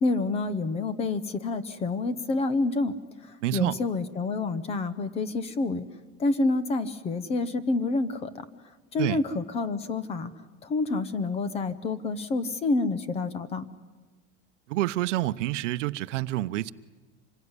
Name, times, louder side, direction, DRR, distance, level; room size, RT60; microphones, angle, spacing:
voice 1, 0.0-2.9 3.5-5.8 6.2-8.4 8.9-10.3 10.7-13.7, left 3 dB, 15° left, 0.9 m, -28 dB
voice 2, 3.4-3.8 9.0-9.2 14.7-16.7, right 16 dB, 90° right, 0.9 m, -28 dB
26.5 x 22.0 x 9.7 m
supercardioid pair, 175°, 36 cm